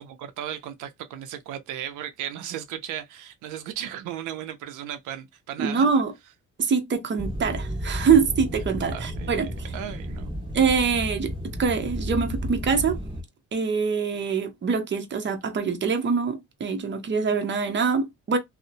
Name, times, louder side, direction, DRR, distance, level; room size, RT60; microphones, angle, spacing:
voice 1, 0.0-5.9 8.9-10.3, right 10 dB, 90° right, 0.5 m, -36 dB
voice 2, 5.6-6.1 6.6-9.5 10.5-11.3 11.6-13.0 13.5-18.4, right 5 dB, 40° right, 0.7 m, -24 dB
sound 1, 7.2-13.2, equal, 15° right, 1.2 m, -32 dB
2.6 x 2.0 x 2.6 m
cardioid pair, 90°, 30 cm